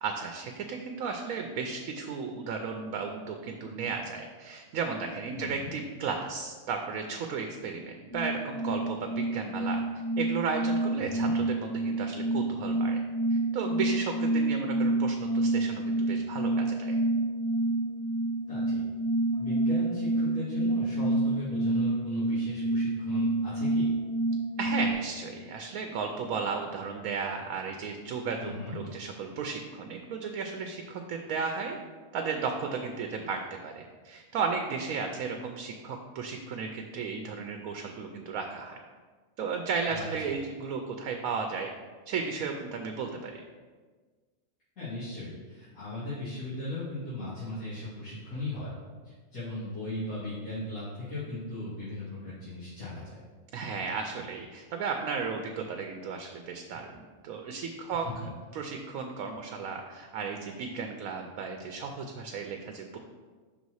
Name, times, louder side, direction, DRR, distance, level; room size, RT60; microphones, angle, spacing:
voice 1, 0.0-9.8 10.2-13.0 13.3-17.0 24.6-31.8 32.1-38.8 39.4-41.7 42.1-43.4 53.5-58.1 58.5-63.0, right 5 dB, 80° right, 4 dB, 1.1 m, -34 dB
voice 2, 5.4-5.7 11.0-11.3 18.5-18.8 19.4-23.9 28.4-28.8 39.9-40.0 44.8-48.7 49.0-53.2 58.2-58.3, left 2 dB, 80° left, -14 dB, 2.8 m, -37 dB
sound 1, 8.1-24.9, right 2 dB, 20° left, 0.7 m, -28 dB
5.8 x 4.1 x 6.3 m, 1.4 s
omnidirectional pair, 1.5 m